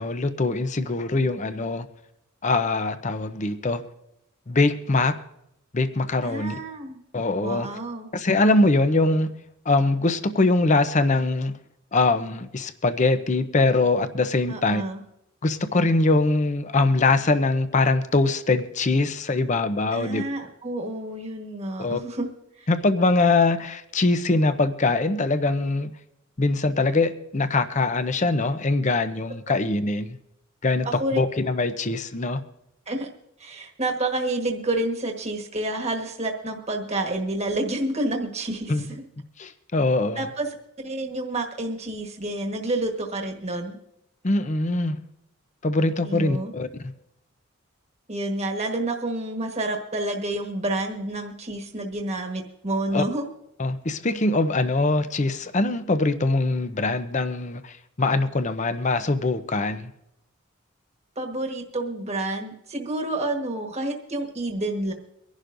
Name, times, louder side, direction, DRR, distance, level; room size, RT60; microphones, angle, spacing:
voice 1, 0.0-1.9 2.4-3.8 4.5-5.2 5.7-6.5 7.1-7.7 8.1-9.3 9.7-11.5 11.9-14.8 15.4-20.2 21.8-22.0 22.7-25.9 26.4-30.2 30.6-30.9 31.1-32.4 38.7-38.9 39.4-40.3 44.2-45.0 45.6-46.9 52.9-53.0 53.6-59.9, left 2 dB, 35° left, 11 dB, 0.6 m, -22 dB
voice 2, 6.2-7.0 7.4-8.1 14.5-15.0 19.9-22.3 22.6-22.7 30.8-31.2 32.9-33.1 33.4-39.0 40.2-40.5 40.8-43.8 46.0-46.5 48.1-53.3 61.2-64.9, right 2 dB, 30° right, 2 dB, 1.4 m, -29 dB
24.0 x 11.5 x 2.6 m, 0.81 s
head